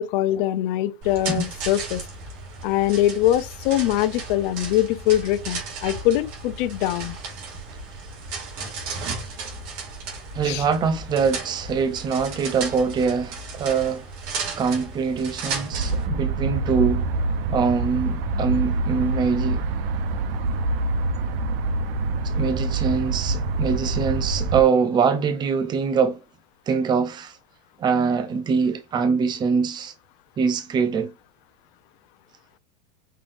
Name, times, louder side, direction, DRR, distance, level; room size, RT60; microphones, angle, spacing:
voice 1, 0.0-2.0 2.6-7.2 10.4-10.6, left 13 dB, 60° left, 0.7 m, -23 dB
sound 1, 1.0-16.1, right 4 dB, 60° right, 2.3 m, -34 dB
voice 2, 10.3-14.1 14.6-17.1 17.5-19.6 22.4-26.2 26.7-27.3 27.8-29.9 30.4-31.1, right 5 dB, 15° right, 0.5 m, -23 dB
sound 2, 15.7-24.6, right 3 dB, 80° right, 0.8 m, -25 dB
5.6 x 3.4 x 2.5 m
supercardioid pair, 145°, 29 cm